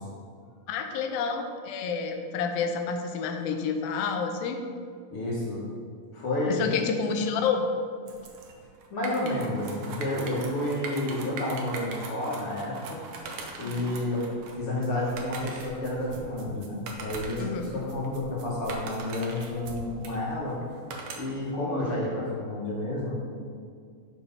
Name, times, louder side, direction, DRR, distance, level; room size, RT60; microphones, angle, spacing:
voice 1, 0.7-4.6 6.5-7.6 13.6-13.9 17.4-17.7, left 5 dB, 85° left, 5 dB, 2.5 m, -29 dB
voice 2, 5.1-5.6 6.1-6.7 8.9-13.0 13.6-20.6 21.2-23.2, left 1 dB, 50° left, -5 dB, 2.0 m, -30 dB
sound 1, 8.1-21.5, right 3 dB, 80° right, 1.3 m, -41 dB
10.5 x 4.8 x 5.5 m, 2.1 s
omnidirectional pair, 4.1 m